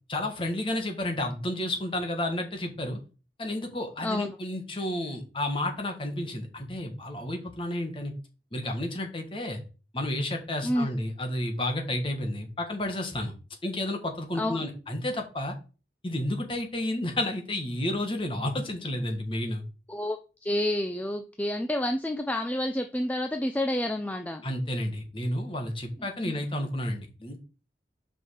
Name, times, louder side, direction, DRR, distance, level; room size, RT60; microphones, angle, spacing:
voice 1, 0.1-3.0 3.4-8.1 8.5-9.6 9.9-13.3 13.6-15.5 16.0-19.6 24.4-27.4, left 1 dB, 30° left, 4 dB, 1.6 m, -31 dB
voice 2, 4.0-4.3 10.6-10.9 14.3-14.6 19.9-24.4 26.0-26.1, left 1 dB, 10° left, 6 dB, 0.4 m, -29 dB
5.4 x 5.4 x 6.5 m, 0.34 s
head